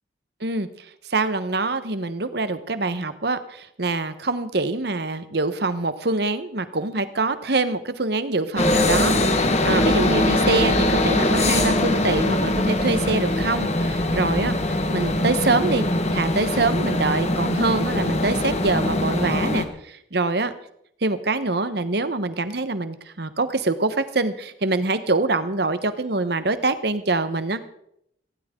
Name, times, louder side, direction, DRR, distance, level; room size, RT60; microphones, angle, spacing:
voice 1, 1.1-15.8 16.1-20.5 21.0-27.7, right 3 dB, 60° right, 11 dB, 1.1 m, -25 dB
sound 1, 8.6-19.7, left 1 dB, 35° left, 1.4 m, -22 dB
18.0 x 16.5 x 3.8 m, 0.74 s
head